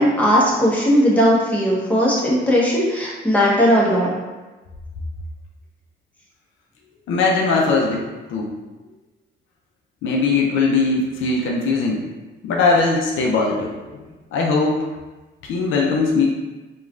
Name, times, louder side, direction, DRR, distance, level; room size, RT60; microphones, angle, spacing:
voice 1, 0.0-4.1, equal, 5° left, -5 dB, 0.8 m, -17 dB
voice 2, 7.1-8.5 10.0-12.1 12.4-14.0 14.3-14.9 15.4-16.3, left 3 dB, 85° left, -2 dB, 0.5 m, -20 dB
3.0 x 2.3 x 2.4 m, 1.2 s
cardioid pair, 90°, 20 cm